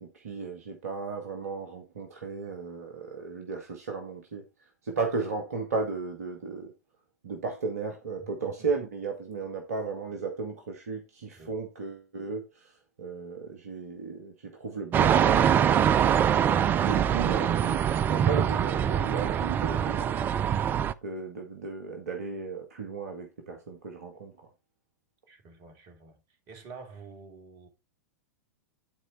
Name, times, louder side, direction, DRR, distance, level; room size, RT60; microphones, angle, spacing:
voice 1, 0.0-4.4 4.8-6.7 7.2-15.5 16.8-20.1 21.0-24.3, right 4 dB, 60° right, 1.9 m, -35 dB
voice 2, 8.2-8.5 11.4-11.5 19.8-20.0 25.3-26.2 26.5-27.7, right 4 dB, 40° right, 2.9 m, -48 dB
sound 1, 14.9-20.9, right 9 dB, 20° right, 0.5 m, -24 dB
11.5 x 4.8 x 4.4 m
figure-of-eight pair, 100°, 9 cm